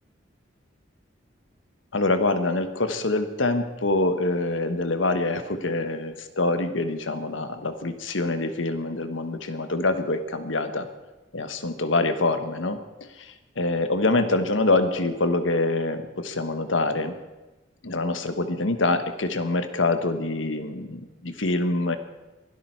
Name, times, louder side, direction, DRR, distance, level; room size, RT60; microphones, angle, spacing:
voice 1, 1.9-10.9 11.3-12.8 13.2-17.2 17.8-22.0, left 2 dB, 85° left, 9 dB, 1.4 m, -25 dB
22.5 x 12.5 x 4.7 m, 1.1 s
head